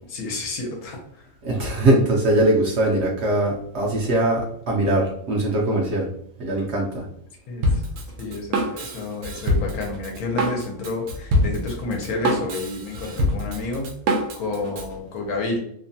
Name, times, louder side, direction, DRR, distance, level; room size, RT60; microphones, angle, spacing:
voice 1, 0.1-1.3 7.5-7.8 8.2-13.9 14.4-15.6, left 2 dB, 80° left, 1 dB, 1.2 m, -30 dB
voice 2, 1.4-6.1 6.4-7.1, right 1 dB, 60° right, -3 dB, 0.8 m, -21 dB
Drum kit, 7.6-14.9, equal, 80° right, 1.1 m, -25 dB
3.0 x 2.1 x 2.6 m, 0.71 s
omnidirectional pair, 1.5 m